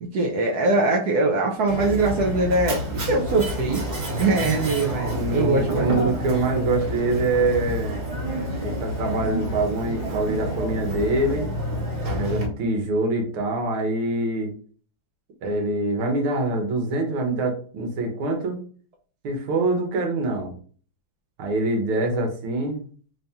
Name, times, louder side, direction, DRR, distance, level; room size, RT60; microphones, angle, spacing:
voice 1, 0.0-3.8 4.2-6.1, right 3 dB, 70° right, 0 dB, 1.0 m, -22 dB
Mechanisms, 1.7-12.5, equal, 50° right, 1.9 m, -29 dB
voice 2, 5.1-8.0 8.6-11.5 12.1-14.5 15.4-18.6 19.2-20.5 21.4-22.9, right 2 dB, 85° right, 3 dB, 1.8 m, -25 dB
3.9 x 2.8 x 3.4 m, 0.44 s
omnidirectional pair, 2.3 m